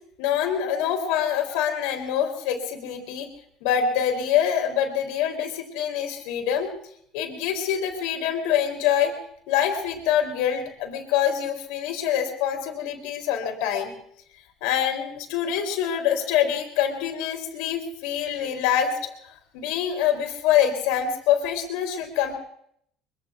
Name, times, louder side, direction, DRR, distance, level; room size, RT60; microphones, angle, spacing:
voice 1, 0.2-3.3 3.6-6.7 7.1-9.1 9.5-13.9 14.6-19.1 19.5-22.4, left 9 dB, 85° left, 4 dB, 3.0 m, -25 dB
23.0 x 22.5 x 2.4 m, 0.69 s
supercardioid pair, 105°, 0 cm